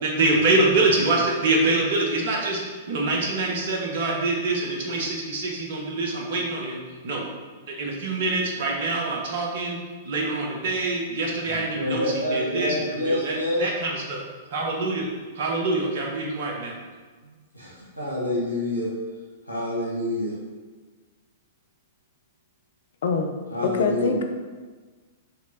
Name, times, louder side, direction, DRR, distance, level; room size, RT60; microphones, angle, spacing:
voice 1, 0.0-7.3 7.7-9.8 10.0-14.2 14.5-15.1 15.3-16.7, right 2 dB, 55° right, 0 dB, 0.9 m, -25 dB
voice 2, 11.5-13.6 17.2-18.9 19.5-20.3 23.5-24.2, left 1 dB, 85° right, -5 dB, 1.4 m, -27 dB
voice 3, 23.6-24.2, left 4 dB, 60° left, 5 dB, 0.5 m, -24 dB
5.3 x 3.1 x 2.8 m, 1.4 s
figure-of-eight pair, 105°, 0 cm